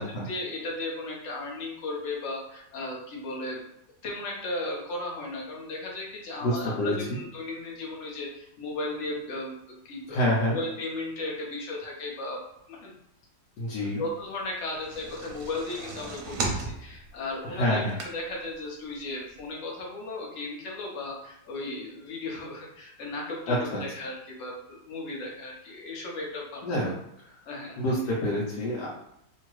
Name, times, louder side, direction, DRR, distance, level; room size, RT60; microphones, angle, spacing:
voice 1, 0.0-3.7 4.0-10.2 10.5-12.4 12.7-12.9 13.8-26.6 27.4-27.9, left 2 dB, 55° left, -2 dB, 0.9 m, -36 dB
voice 2, 6.4-7.2 10.1-10.6 13.6-14.0 17.4-18.0 23.5-23.8 26.6-26.9 27.2-27.4 27.8-28.9, left 1 dB, 75° left, -5 dB, 1.3 m, -27 dB
sound 1, 14.6-18.5 19.0-19.1 19.4-19.5, right 3 dB, 65° right, 1.0 m, -35 dB
2.8 x 2.7 x 3.0 m, 0.78 s
omnidirectional pair, 1.9 m